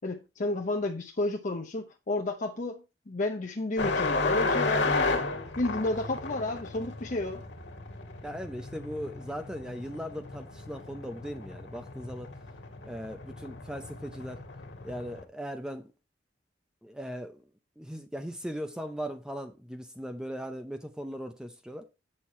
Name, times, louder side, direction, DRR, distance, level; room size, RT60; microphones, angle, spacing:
voice 1, 0.0-2.8 3.1-5.3 5.6-7.4, left 2 dB, 45° left, 0.8 m, -31 dB
sound 1, 3.8-15.2, left 3 dB, 70° left, 1.7 m, -33 dB
voice 2, 8.2-12.3 12.8-14.4 14.8-15.9 16.8-17.4 17.8-21.9, equal, 5° right, 0.6 m, -38 dB
7.6 x 6.4 x 4.2 m
head